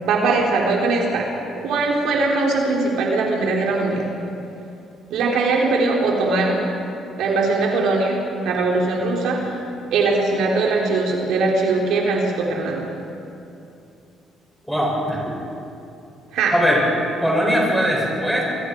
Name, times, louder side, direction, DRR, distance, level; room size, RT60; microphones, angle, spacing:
voice 1, 0.0-1.3 1.6-4.1 5.1-6.6 7.2-8.2 8.4-9.5 9.9-12.9 16.3-16.6, right 3 dB, 80° right, -1 dB, 4.1 m, -20 dB
voice 2, 14.7-15.2 16.5-16.8 17.2-18.4, equal, ahead, -4 dB, 7.4 m, -20 dB
27.5 x 23.0 x 4.9 m, 2.7 s
cardioid pair, 115°, 0 cm